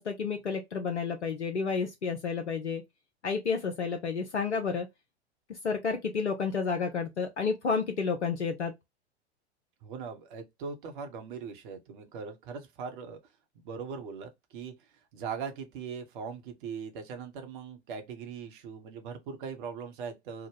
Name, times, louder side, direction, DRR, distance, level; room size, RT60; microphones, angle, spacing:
voice 1, 0.0-2.8 3.2-4.9 5.5-8.7, left 5 dB, 80° left, 0.6 m, -31 dB
voice 2, 9.8-13.2 13.6-14.7 15.1-20.5, right 6 dB, 45° right, 1.0 m, -40 dB
3.5 x 2.1 x 3.2 m
figure-of-eight pair, 90°, 34 cm